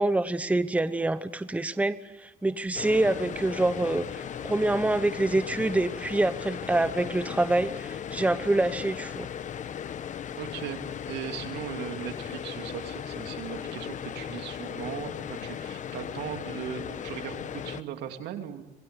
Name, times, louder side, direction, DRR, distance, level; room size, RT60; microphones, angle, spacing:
voice 1, 0.0-9.3, right 2 dB, 10° right, 12 dB, 1.1 m, -26 dB
sound 1, 2.7-17.8, left 9 dB, 45° left, 1.1 m, -37 dB
voice 2, 10.4-10.8 11.1-18.6, right 10 dB, 80° right, 5 dB, 2.9 m, -38 dB
26.5 x 20.5 x 8.2 m, 1.1 s
cardioid pair, 110°, 17 cm